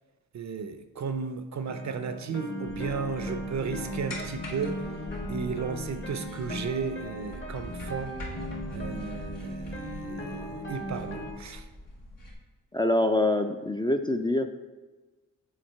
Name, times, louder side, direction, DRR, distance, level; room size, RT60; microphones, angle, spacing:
voice 1, 0.3-4.9 5.3-8.2 8.7-11.7, right 5 dB, 60° right, 0.5 m, -34 dB
sound 1, 1.7-11.3, equal, 35° left, 1.0 m, -37 dB
sound 2, 2.7-12.3, left 1 dB, 75° left, 1.3 m, -43 dB
voice 2, 12.7-14.5, left 1 dB, 15° left, 0.3 m, -25 dB
6.5 x 3.9 x 4.4 m
cardioid pair, 70°, 33 cm